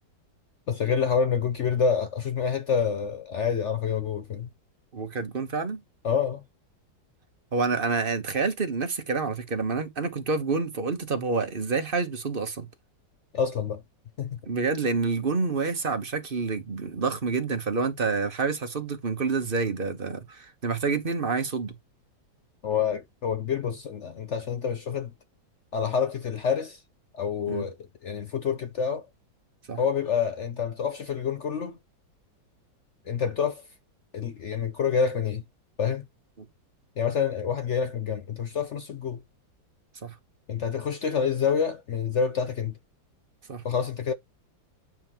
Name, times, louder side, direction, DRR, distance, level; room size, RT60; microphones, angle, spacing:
voice 1, 0.7-4.5 6.0-6.4 13.3-13.8 14.2-14.3 22.6-25.1 25.7-26.8 27.1-27.7 28.0-29.1 29.8-31.8 33.1-33.6 34.1-35.4 35.8-36.0 37.0-39.2 40.5-42.7 43.6-44.1, left 6 dB, 65° left, 0.7 m, -27 dB
voice 2, 4.9-5.8 7.5-12.7 14.4-21.7 27.5-27.6 29.7-29.8 36.4-36.5 40.0-40.1 43.5-43.6, right 4 dB, 30° right, 1.2 m, -28 dB
9.2 x 5.6 x 2.9 m
omnidirectional pair, 2.1 m